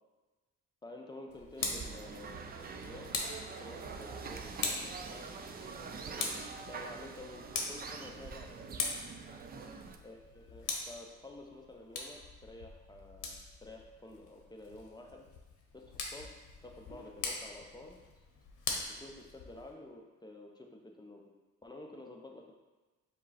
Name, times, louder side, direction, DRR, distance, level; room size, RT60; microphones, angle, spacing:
voice 1, 0.8-3.2 3.6-5.3 5.7-8.8 10.0-15.3 15.7-16.3 16.6-18.2 18.9-21.2 21.6-22.6, left 2 dB, 15° left, 1 dB, 0.5 m, -51 dB
Tick, 1.3-19.7, left 4 dB, 80° left, 0.8 m, -43 dB
sound 1, 1.6-10.0, right 5 dB, 30° right, 0.4 m, -45 dB
5.0 x 2.1 x 4.1 m, 1.2 s
cardioid pair, 90°, 30 cm